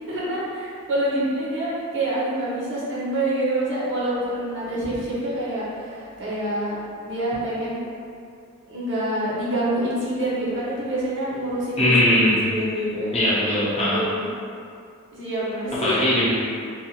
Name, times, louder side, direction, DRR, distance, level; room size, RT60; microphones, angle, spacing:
voice 1, 0.1-6.8 7.0-7.8 8.7-13.2 13.9-14.3 15.1-16.0, right 1 dB, 55° right, -8 dB, 0.7 m, -26 dB
voice 2, 11.8-12.4 13.1-14.0 15.8-16.3, left 1 dB, 30° left, -9 dB, 0.6 m, -19 dB
2.5 x 2.3 x 2.8 m, 2.4 s
head